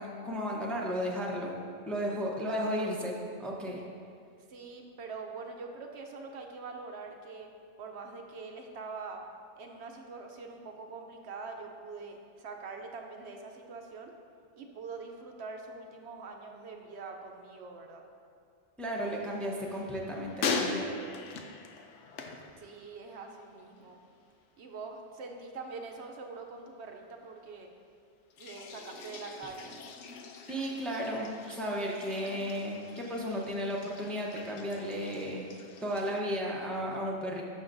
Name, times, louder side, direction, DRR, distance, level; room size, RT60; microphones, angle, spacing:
voice 1, 0.0-1.6 1.9-3.8 18.8-21.0 30.5-35.5 35.8-37.4, equal, ahead, -3 dB, 0.7 m, -34 dB
voice 2, 2.4-2.9 4.5-7.5 7.8-9.2 9.6-14.1 14.6-18.0 22.6-24.0 24.6-27.7 28.4-29.8, right 4 dB, 70° right, 3 dB, 0.9 m, -44 dB
sound 1, 18.9-23.3 23.6-24.2 28.3-36.2, left 4 dB, 90° left, 1.0 m, -41 dB
11.5 x 6.0 x 2.6 m, 2.3 s
omnidirectional pair, 1.2 m